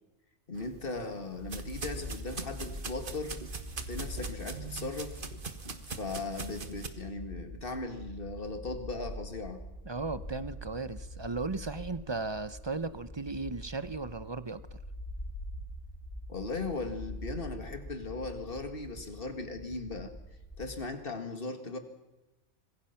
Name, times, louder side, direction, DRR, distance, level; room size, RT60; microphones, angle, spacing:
voice 1, 0.5-3.4 3.9-5.2 5.9-9.6 16.3-20.1 20.6-21.8, left 3 dB, 40° left, 7 dB, 2.3 m, -38 dB
sound 1, 0.5-6.9, right 4 dB, 40° right, 1.5 m, -42 dB
sound 2, 1.4-20.8, equal, 60° left, 8.3 m, -44 dB
voice 2, 9.8-14.8, right 3 dB, 25° right, 13 dB, 0.8 m, -36 dB
26.0 x 21.5 x 5.9 m, 0.99 s
omnidirectional pair, 1.4 m